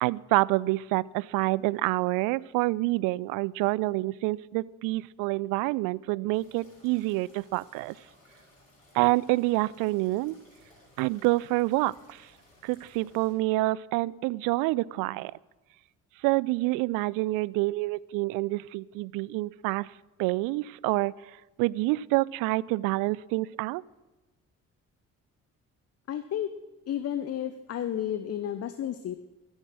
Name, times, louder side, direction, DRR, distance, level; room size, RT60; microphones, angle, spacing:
voice 1, 0.0-7.9 8.9-10.4 11.0-12.3 12.6-15.3 16.2-19.9 20.2-21.1 21.6-23.8, right 20 dB, 55° right, 22 dB, 0.5 m, -27 dB
sound 1, 6.3-13.3, left 1 dB, 85° left, 3.8 m, -59 dB
voice 2, 26.1-26.5 26.9-29.2, left 10 dB, 40° left, 12 dB, 0.8 m, -32 dB
16.5 x 13.0 x 6.2 m, 1.1 s
figure-of-eight pair, 40°, 39 cm